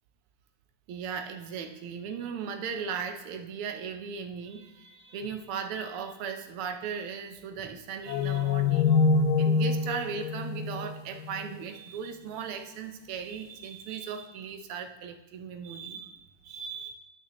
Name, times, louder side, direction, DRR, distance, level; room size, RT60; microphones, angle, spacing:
voice 1, 0.9-8.9 9.4-16.9, right 6 dB, 80° right, 5 dB, 1.7 m, -37 dB
sound 1, 8.1-11.5, left 4 dB, 75° left, 1.3 m, -25 dB
12.0 x 6.3 x 3.0 m, 1.1 s
omnidirectional pair, 2.4 m